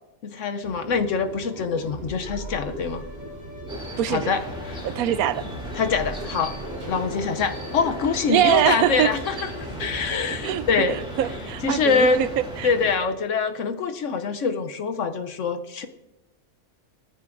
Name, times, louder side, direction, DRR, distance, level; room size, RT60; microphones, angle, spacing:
voice 1, 0.2-3.0 4.1-4.9 5.7-6.5 6.9-9.5 9.8-11.0 11.6-12.2 12.6-15.9, left 5 dB, 65° left, 8 dB, 1.0 m, -24 dB
sound 1, 0.6-11.4, equal, 45° right, 4.1 m, -37 dB
sound 2, 3.7-12.9, equal, 5° right, 2.6 m, -37 dB
voice 2, 4.0-4.3 4.8-5.4 8.3-9.1 10.4-10.6 11.2-12.3 12.6-12.7, right 12 dB, 85° right, 14 dB, 1.1 m, -22 dB
19.5 x 13.5 x 2.6 m, 1.0 s
omnidirectional pair, 1.5 m